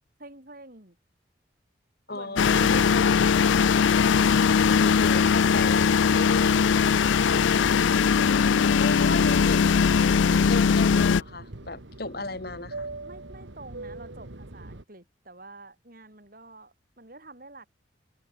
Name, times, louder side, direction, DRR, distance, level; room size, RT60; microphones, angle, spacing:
voice 1, 0.2-1.0 2.1-3.7 13.0-17.7, right 2 dB, 50° right, 6.1 m, -48 dB
voice 2, 2.1-3.3 4.8-7.8 8.8-9.9 10.3-12.9, left 2 dB, 55° left, 2.6 m, -35 dB
sound 1, 2.4-11.2, left 6 dB, 80° left, 0.4 m, -20 dB
Fixed-wing aircraft airplane, 9.8-14.8, right 2 dB, 75° right, 1.8 m, -42 dB
head